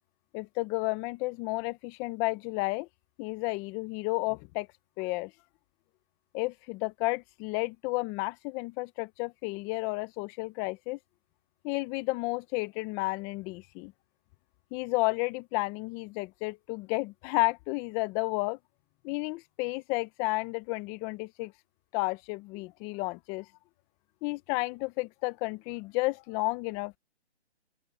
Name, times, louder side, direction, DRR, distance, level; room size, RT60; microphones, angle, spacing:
voice 1, 0.3-2.9 3.2-4.7 5.0-5.3 6.3-11.0 11.6-13.9 14.7-18.6 19.0-21.5 21.9-23.5 24.2-27.0, left 24 dB, 10° left, 0.7 m, -32 dB
open air
figure-of-eight pair, 150°, 34 cm